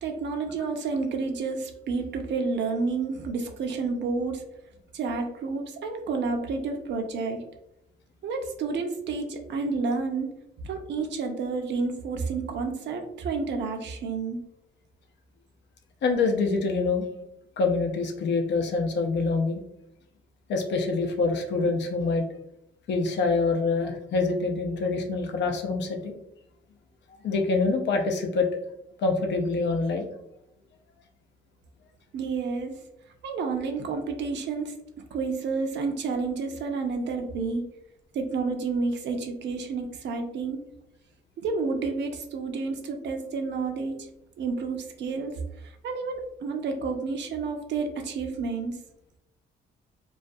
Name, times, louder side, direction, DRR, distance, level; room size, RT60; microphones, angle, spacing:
voice 1, 0.0-4.4 4.9-7.4 8.2-10.3 10.6-14.4 32.1-32.8 33.2-34.8 35.1-37.6 38.1-40.6 41.4-44.0 44.4-45.3 45.6-48.8, right 4 dB, 65° right, 4 dB, 0.5 m, -30 dB
voice 2, 16.0-17.1 17.6-19.6 20.5-22.3 22.9-26.1 27.2-28.5 29.0-30.1, left 3 dB, 65° left, 3 dB, 0.5 m, -25 dB
2.3 x 2.2 x 2.5 m, 0.82 s
cardioid pair, 90°, 20 cm